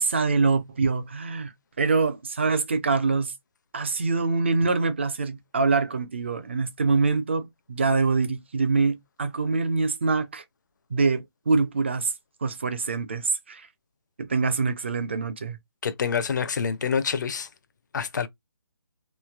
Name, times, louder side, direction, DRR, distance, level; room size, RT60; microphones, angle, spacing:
voice 1, 0.0-1.5 1.8-3.3 3.7-10.4 10.9-12.1 12.4-13.7 14.2-15.6, right 4 dB, 25° right, 0.4 m, -24 dB
voice 2, 15.8-17.5 17.9-18.3, left 6 dB, 45° left, 0.4 m, -26 dB
3.1 x 2.6 x 2.3 m
hypercardioid pair, 170°, 14 cm